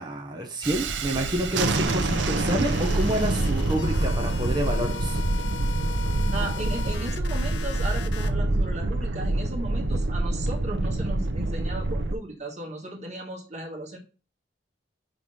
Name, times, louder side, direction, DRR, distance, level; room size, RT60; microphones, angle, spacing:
voice 1, 0.0-5.2, right 1 dB, 20° right, 1 dB, 1.0 m, -29 dB
Thunderstorm, 0.6-12.1, right 2 dB, 80° right, 0.7 m, -26 dB
sound 1, 1.9-8.3, left 6 dB, 75° left, 0.7 m, -39 dB
voice 2, 6.3-14.0, right 2 dB, 35° right, -3 dB, 2.0 m, -36 dB
5.2 x 4.5 x 5.5 m, 0.36 s
head